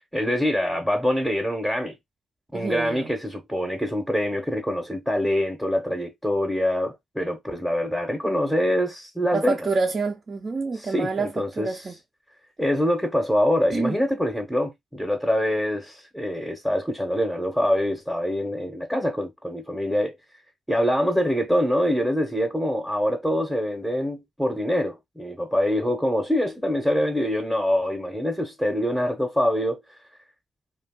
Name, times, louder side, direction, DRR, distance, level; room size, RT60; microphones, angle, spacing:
voice 1, 0.1-2.0 2.5-9.6 10.8-11.8 12.6-20.2 20.7-29.8, equal, ahead, 0.8 m, -25 dB
voice 2, 2.5-3.1 9.3-11.9 13.7-14.0, right 4 dB, 35° right, 0.5 m, -27 dB
2.4 x 2.3 x 3.6 m
cardioid pair, 90°, 0 cm